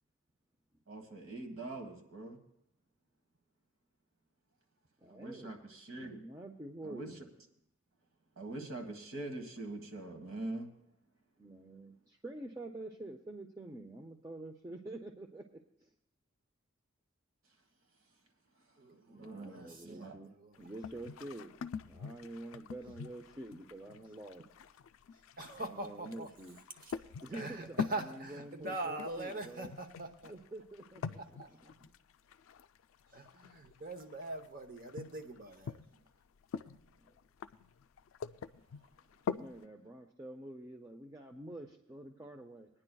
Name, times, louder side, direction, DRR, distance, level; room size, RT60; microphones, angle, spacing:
voice 1, 0.9-2.4 5.1-6.2 6.8-7.1 8.4-10.7 19.1-20.2, right 2 dB, 75° right, 5 dB, 1.5 m, -43 dB
voice 2, 5.0-5.6 6.0-7.2 11.4-15.9 19.1-24.5 25.5-26.6 27.2-29.7 30.3-31.9 35.9-36.1 37.0-37.1 39.3-42.7, right 1 dB, 15° right, 3 dB, 0.5 m, -48 dB
voice 3, 18.8-20.1 20.4-20.5 25.4-26.3 27.3-30.3 31.4-31.5 33.1-35.8, right 2 dB, 40° right, 7 dB, 0.8 m, -42 dB
sound 1, 20.5-36.1 36.3-39.6, left 6 dB, 70° left, 0.3 m, -44 dB
22.5 x 9.8 x 2.3 m, 0.75 s
head